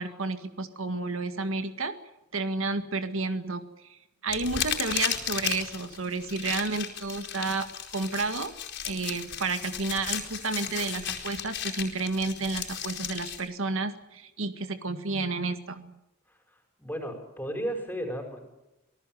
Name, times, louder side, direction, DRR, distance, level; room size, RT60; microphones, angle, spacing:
voice 1, 0.0-2.0 2.3-8.5 8.8-15.9, right 3 dB, 75° right, 9 dB, 1.9 m, -31 dB
sound 1, 4.3-13.4, left 9 dB, 60° left, 4.5 m, -34 dB
voice 2, 16.3-18.5, equal, 10° left, 4 dB, 5.4 m, -35 dB
26.0 x 18.5 x 7.7 m, 0.97 s
head